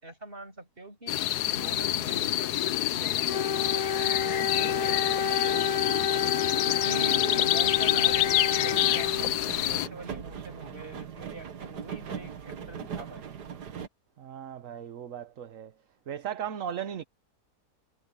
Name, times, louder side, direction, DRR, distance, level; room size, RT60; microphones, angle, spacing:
voice 1, 0.0-1.2 1.5-6.1 6.7-13.2, right 1 dB, 35° right, 7.7 m, -43 dB
sound 1, 1.1-9.9, left 13 dB, 75° left, 1.2 m, -27 dB
Wind instrument woodwind instrument, 3.3-9.6, left 6 dB, 50° left, 0.4 m, -30 dB
sound 2, 4.7-13.9, right 7 dB, 80° right, 2.0 m, -42 dB
voice 2, 6.8-7.2 14.2-15.7 16.1-17.0, right 9 dB, 55° right, 1.3 m, -37 dB
omnidirectional pair, 1.8 m